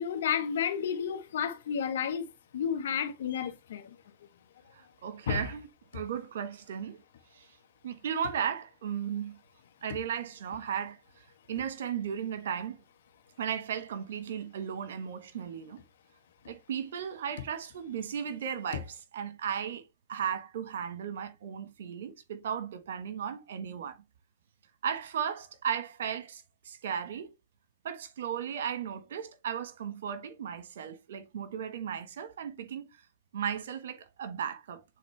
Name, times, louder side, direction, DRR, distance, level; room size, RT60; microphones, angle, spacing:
voice 1, 0.0-2.3 2.5-4.0 5.3-5.5, left 8 dB, 80° left, 1.3 m, -31 dB
voice 2, 4.7-5.7 5.9-7.0 7.3-7.5 7.8-9.4 9.8-12.8 13.4-15.8 16.5-24.0 24.8-27.3 27.8-32.9 33.3-34.8, right 8 dB, 80° right, 1.3 m, -36 dB
8.4 x 4.0 x 3.3 m
hypercardioid pair, 120°, 0 cm